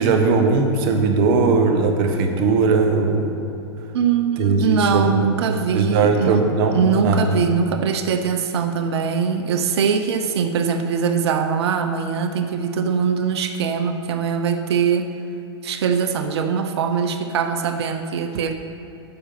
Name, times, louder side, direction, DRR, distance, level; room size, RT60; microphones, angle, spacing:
voice 1, 0.0-3.4 4.4-6.8 7.0-7.2, right 4 dB, 55° right, 5 dB, 1.4 m, -19 dB
voice 2, 3.9-15.1 15.6-18.5, right 6 dB, 70° right, 8 dB, 0.8 m, -22 dB
9.2 x 6.8 x 5.9 m, 2.8 s
hypercardioid pair, 115°, 14 cm